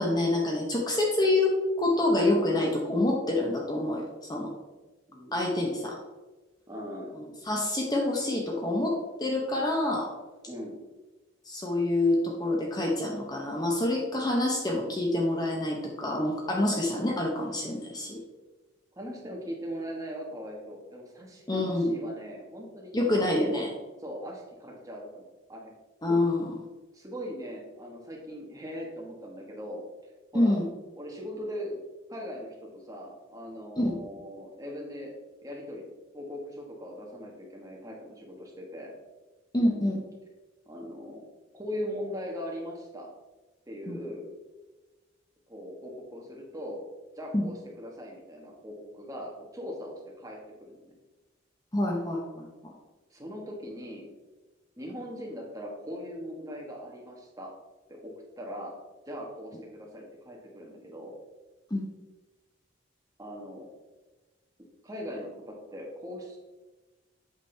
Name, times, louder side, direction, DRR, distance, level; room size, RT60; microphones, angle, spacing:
voice 1, 0.0-4.5 5.3-6.0 7.2-10.1 11.5-18.2 21.5-21.9 22.9-23.7 26.0-26.6 30.3-30.7 33.8-33.9 39.5-40.0 43.9-44.0 47.3-47.4 51.7-52.7 61.7-61.8, left 1 dB, 20° left, 0 dB, 0.9 m, -27 dB
voice 2, 6.7-7.3 10.5-10.8 18.9-23.7 24.0-25.7 26.9-29.9 30.3-30.6 31.0-31.8 32.1-35.1 35.4-38.9 40.6-41.3 41.5-43.1 43.7-44.2 45.5-46.8 47.1-50.9 53.1-54.1 54.8-57.5 57.9-58.8 59.1-61.2 63.2-63.7 64.8-66.4, equal, 15° right, -1 dB, 1.4 m, -40 dB
8.2 x 6.1 x 3.4 m, 1.2 s
head